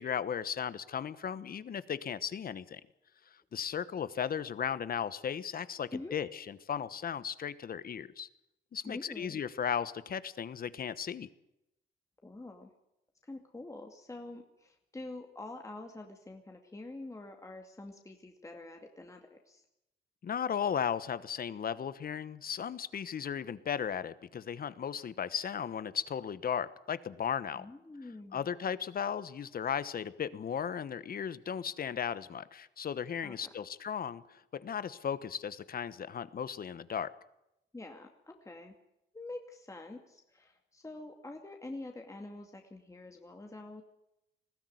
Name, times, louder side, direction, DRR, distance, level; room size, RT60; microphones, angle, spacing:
voice 1, 0.0-2.8 3.3-8.3 8.7-11.3 20.2-27.7 28.3-37.1, left 8 dB, 50° left, 16 dB, 1.2 m, -36 dB
voice 2, 8.8-9.4 12.2-12.7 13.2-19.6 27.5-28.5 33.2-33.3 37.7-38.8 39.1-43.8, left 2 dB, 15° left, 3 dB, 2.3 m, -46 dB
20.5 x 15.0 x 9.4 m, 0.87 s
cardioid pair, 90°, 20 cm